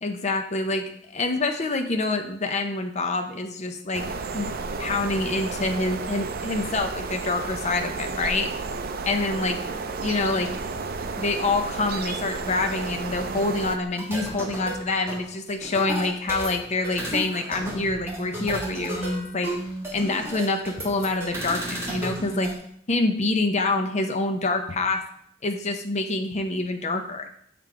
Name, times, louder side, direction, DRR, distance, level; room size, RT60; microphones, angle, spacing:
voice 1, 0.0-4.0 4.3-4.5 4.8-8.5 9.0-9.6 10.0-10.5 11.1-19.5 19.9-22.5 22.9-25.0 25.4-27.3, left 3 dB, 35° left, 5 dB, 0.6 m, -26 dB
sound 1, 3.9-13.8, right 4 dB, 50° right, 0.5 m, -32 dB
sound 2, 14.0-22.6, right 1 dB, 15° right, 1.5 m, -33 dB
7.5 x 3.7 x 4.7 m, 0.66 s
head